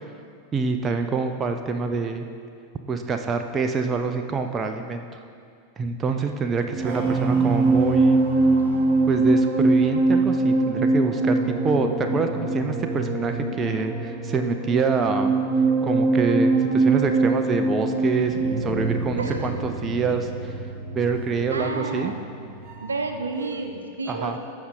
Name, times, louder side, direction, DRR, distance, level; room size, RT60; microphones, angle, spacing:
voice 1, 0.5-2.3 2.9-5.2 5.8-8.2 9.1-15.3 15.8-20.5 20.9-22.1 24.1-24.4, right 4 dB, 20° right, 6 dB, 0.5 m, -26 dB
sound 1, 6.5-23.1 23.4-23.7, right 3 dB, 40° right, 1.3 m, -23 dB
voice 2, 19.1-19.6 21.5-22.2 22.8-24.4, right 3 dB, 75° right, 5 dB, 0.7 m, -31 dB
14.0 x 5.5 x 3.8 m, 2.3 s
figure-of-eight pair, 90°, 0 cm